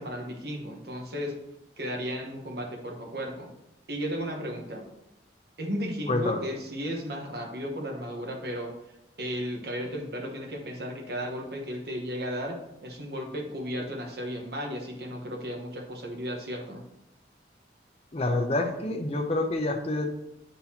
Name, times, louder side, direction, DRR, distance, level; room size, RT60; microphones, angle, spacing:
voice 1, 0.0-1.4 1.8-3.5 3.9-4.8 5.6-8.7 9.2-16.8, equal, 60° right, 2 dB, 1.2 m, -34 dB
voice 2, 6.1-6.4 18.1-20.1, left 2 dB, 35° left, 4 dB, 0.6 m, -27 dB
10.0 x 4.0 x 2.8 m, 0.87 s
head